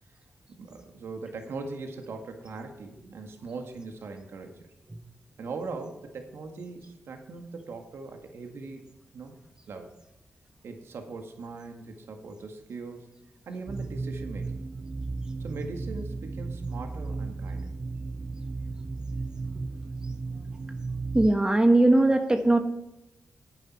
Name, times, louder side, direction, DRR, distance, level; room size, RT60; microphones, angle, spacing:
voice 1, 0.5-4.7 5.4-8.8 9.1-9.4 9.7-9.9 10.6-13.1 13.5-14.6 15.4-17.7, right 3 dB, 75° right, 5 dB, 1.8 m, -40 dB
sound 1, 13.7-21.3, right 3 dB, 40° right, 0.5 m, -35 dB
voice 2, 21.1-22.6, right 2 dB, 20° right, 5 dB, 1.3 m, -20 dB
10.5 x 9.0 x 4.4 m, 0.90 s
supercardioid pair, 45°, 4 cm